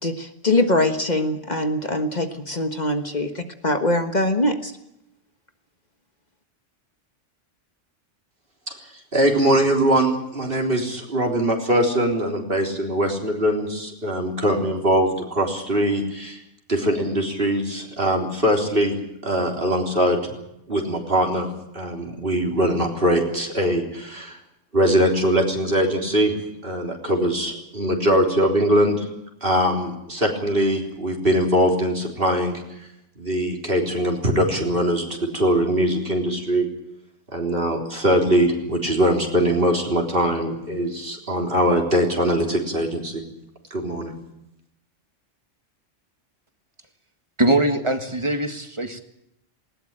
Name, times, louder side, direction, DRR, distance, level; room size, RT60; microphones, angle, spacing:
voice 1, 0.0-4.7, left 1 dB, 35° left, 7 dB, 1.5 m, -23 dB
voice 2, 9.1-16.4 16.7-19.0 19.2-20.2 20.7-21.5 21.7-24.4 24.7-26.3 26.6-29.1 29.4-32.6 33.2-36.7 37.3-43.2 43.7-44.1, equal, 50° right, 1 dB, 3.9 m, -22 dB
voice 3, 47.4-49.0, right 1 dB, 25° right, 7 dB, 1.8 m, -22 dB
20.0 x 19.0 x 8.9 m, 0.82 s
omnidirectional pair, 1.2 m